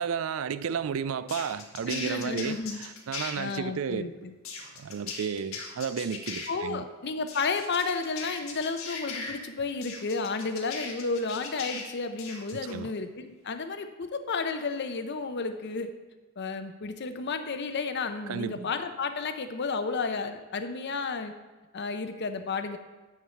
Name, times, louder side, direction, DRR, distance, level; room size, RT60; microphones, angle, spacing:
voice 1, 0.0-4.0 4.8-6.8 12.5-12.9 18.3-18.7, right 7 dB, 75° right, 15 dB, 0.4 m, -33 dB
sound 1, 1.3-3.3 4.4-6.5 7.3-9.3 9.8-11.9 12.2-12.7, left 5 dB, 75° left, 1.8 m, -38 dB
voice 2, 1.9-2.8 3.4-4.3 6.5-15.9 16.4-21.3 21.7-22.8, left 4 dB, 55° left, 9 dB, 0.7 m, -32 dB
9.5 x 4.7 x 6.9 m, 1.3 s
head